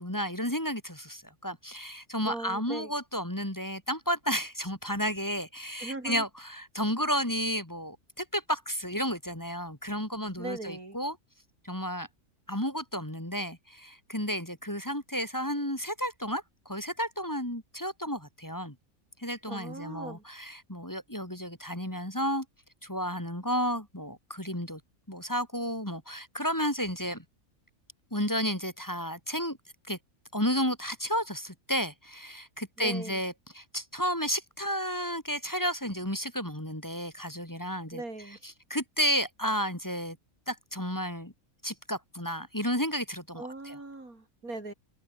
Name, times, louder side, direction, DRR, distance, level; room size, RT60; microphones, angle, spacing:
voice 1, 0.0-11.2 11.6-12.1 12.5-18.7 19.2-22.4 22.8-24.8 25.1-27.2 28.1-29.6 29.9-30.0 30.3-38.0 38.4-40.2 40.5-41.3 41.6-43.8, equal, 15° left, 3.3 m, -32 dB
voice 2, 2.2-2.9 5.8-6.2 10.4-11.0 19.5-20.2 32.8-33.2 37.9-38.4 43.4-44.7, right 2 dB, 85° right, 5.7 m, -39 dB
omnidirectional pair, 1.5 m